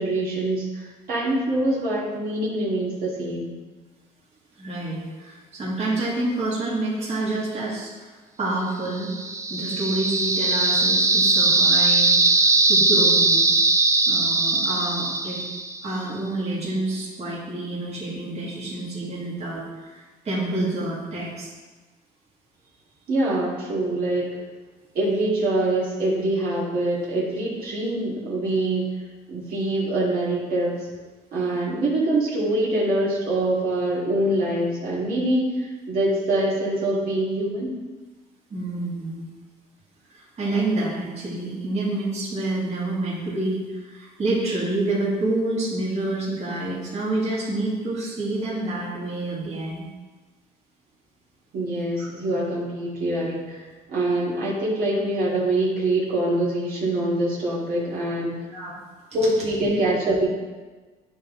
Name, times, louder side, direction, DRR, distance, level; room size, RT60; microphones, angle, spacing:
voice 1, 0.0-3.5 23.1-24.3 24.9-28.9 29.3-30.8 31.3-37.7 51.5-58.4 59.1-60.3, right 1 dB, 60° right, -7 dB, 2.2 m, -24 dB
voice 2, 4.6-8.1 8.4-9.1 9.5-13.6 14.1-15.4 15.8-21.5 38.5-39.3 40.1-49.8 52.0-52.1 58.5-58.7, right 2 dB, 40° right, -6 dB, 2.1 m, -28 dB
sound 1, 9.0-15.9, right 3 dB, 15° right, 0.5 m, -20 dB
9.9 x 3.5 x 3.8 m, 1.3 s
cardioid pair, 110°, 17 cm